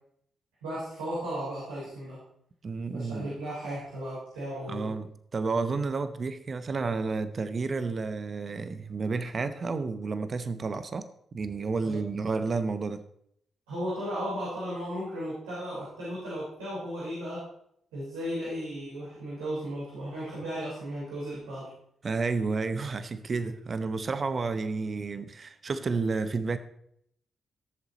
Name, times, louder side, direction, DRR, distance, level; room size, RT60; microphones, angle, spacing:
voice 1, 0.6-2.2 2.9-4.9 11.8-12.0 13.7-17.4 17.9-21.7, equal, 85° right, -8 dB, 4.1 m, -35 dB
voice 2, 2.6-3.3 4.7-13.0 22.0-26.6, right 4 dB, 50° right, 11 dB, 0.9 m, -31 dB
15.5 x 7.0 x 4.0 m, 0.71 s
hypercardioid pair, 40°, 0 cm